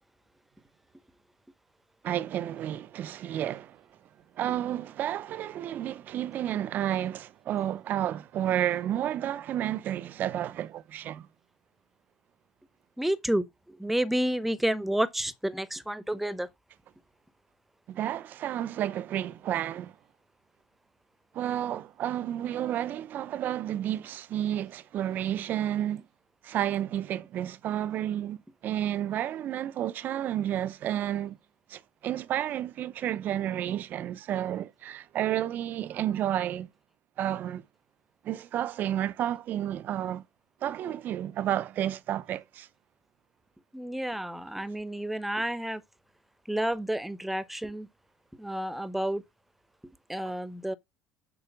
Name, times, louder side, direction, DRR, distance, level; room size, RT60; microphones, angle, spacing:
voice 1, 2.0-3.8 4.4-11.3 17.9-19.9 21.3-26.0 26.4-31.4 31.7-36.7 37.2-37.6 38.2-40.2 40.6-42.7, right 11 dB, 50° right, 0.6 m, -31 dB
voice 2, 13.0-13.5 13.8-16.5 43.7-45.8 46.5-47.9 48.4-49.2 50.1-50.7, right 1 dB, 5° right, 0.8 m, -30 dB
7.0 x 4.8 x 5.9 m
supercardioid pair, 115°, 4 cm